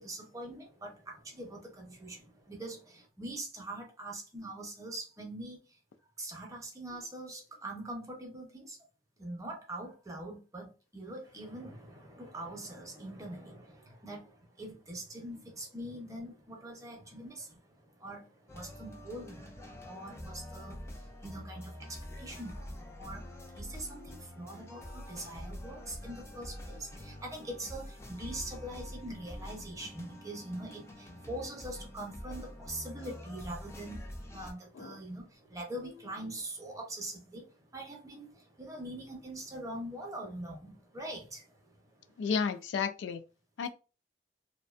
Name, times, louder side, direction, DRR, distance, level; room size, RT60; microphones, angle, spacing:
voice 1, 0.0-5.6 6.2-8.8 9.2-23.3 23.5-34.1 34.3-41.7, right 1 dB, 20° right, 0.7 m, -43 dB
sound 1, 18.5-34.5, left 1 dB, 15° left, 0.4 m, -46 dB
voice 2, 42.2-43.2 43.6-43.7, left 6 dB, 85° left, 0.3 m, -32 dB
2.5 x 2.1 x 2.4 m
head